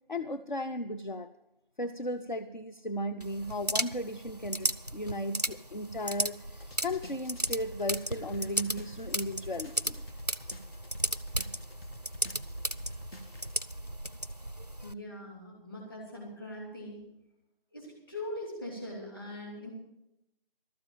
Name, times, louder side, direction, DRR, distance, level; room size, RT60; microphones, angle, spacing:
voice 1, 0.1-1.3 1.8-6.4 6.8-10.0, left 1 dB, 50° left, 7 dB, 0.6 m, -35 dB
sound 1, 3.2-14.9, right 1 dB, 45° right, 0.4 m, -35 dB
sound 2, 6.6-13.6, left 1 dB, 75° left, 1.6 m, -50 dB
voice 2, 14.8-17.1 17.7-19.7, left 1 dB, 25° left, -2 dB, 2.8 m, -41 dB
12.5 x 7.2 x 9.0 m, 0.87 s
figure-of-eight pair, 175°, 30 cm